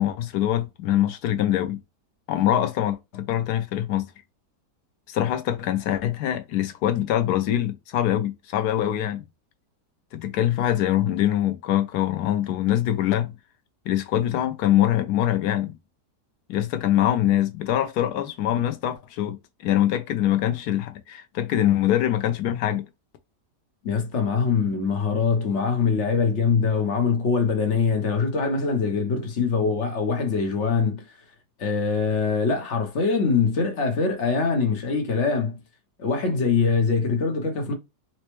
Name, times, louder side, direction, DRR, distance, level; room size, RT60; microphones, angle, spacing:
voice 1, 0.0-1.8 2.3-4.1 5.1-9.2 10.1-13.3 13.9-15.8 16.5-19.4 19.6-22.8, left 12 dB, 75° left, 1.1 m, -23 dB
voice 2, 23.8-31.0 31.6-35.6 36.0-37.7, left 5 dB, 50° left, 1.0 m, -23 dB
4.1 x 2.1 x 3.0 m
omnidirectional pair, 1.8 m